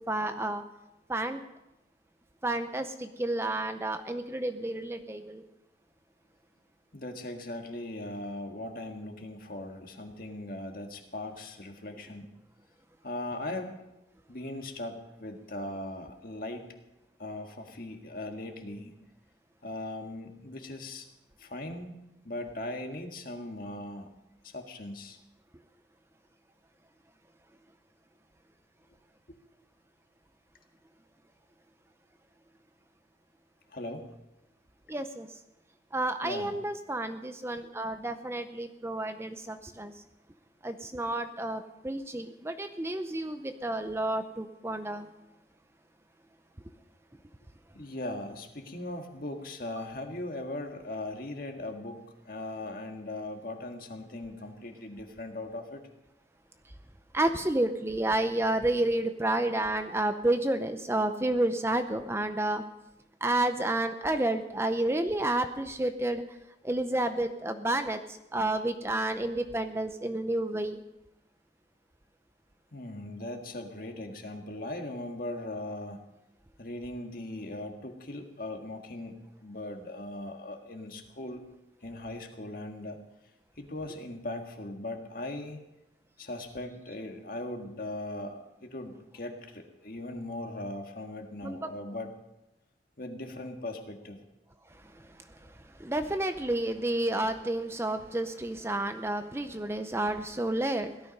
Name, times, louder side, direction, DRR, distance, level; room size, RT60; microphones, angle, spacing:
voice 1, 0.1-0.6 1.1-1.4 2.4-5.4 34.9-35.3 35.9-39.9 40.6-45.1 57.1-62.6 63.2-66.2 66.6-68.0 68.3-70.8 91.4-91.6 95.8-100.9, right 1 dB, 15° right, 8 dB, 0.6 m, -30 dB
voice 2, 6.9-12.3 13.0-13.9 14.3-16.7 17.2-18.9 19.6-21.1 21.4-22.0 22.2-24.1 24.4-25.2 29.3-29.4 33.7-34.1 36.2-36.6 47.7-55.8 72.7-76.0 76.6-81.4 81.8-83.0 83.6-85.6 86.2-92.1 93.0-94.2, left 1 dB, 50° left, 4 dB, 1.7 m, -39 dB
17.0 x 12.5 x 5.3 m, 0.94 s
head